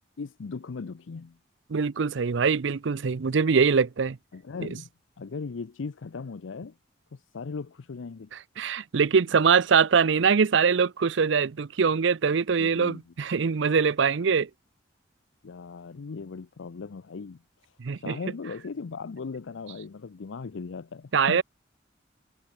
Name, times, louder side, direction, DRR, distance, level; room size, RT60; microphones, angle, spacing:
voice 1, 0.2-1.4 4.3-4.9 5.2-6.7 7.1-8.3 12.6-13.0 15.4-17.7 18.0-21.4, left 4 dB, 85° left, 0.5 m, -38 dB
voice 2, 1.7-4.2 4.6-4.7 8.6-14.5 17.8-18.2 21.1-21.4, right 5 dB, 75° right, 0.5 m, -23 dB
head